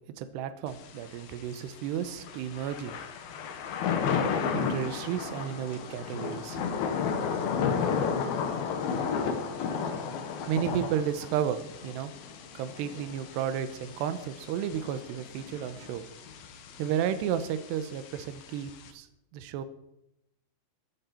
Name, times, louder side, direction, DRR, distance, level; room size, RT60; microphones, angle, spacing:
voice 1, 0.2-3.0 4.5-6.9 10.5-12.1 12.5-16.0 16.8-19.1 19.3-19.6, right 9 dB, 75° right, 10 dB, 2.7 m, -32 dB
Thunder / Rain, 0.7-18.9, left 6 dB, 65° left, 2.7 m, -33 dB
15.0 x 14.0 x 4.4 m, 0.82 s
omnidirectional pair, 5.6 m